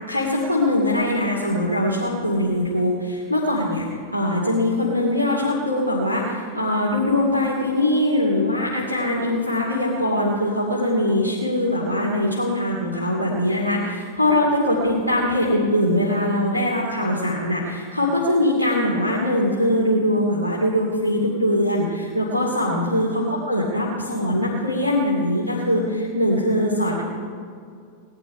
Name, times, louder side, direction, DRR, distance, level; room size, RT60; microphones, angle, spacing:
voice 1, 0.1-3.8 4.1-23.1 23.5-27.0, left 1 dB, 85° left, -4 dB, 2.5 m, -22 dB
19.5 x 11.5 x 5.7 m, 2.3 s
figure-of-eight pair, 90°, 0 cm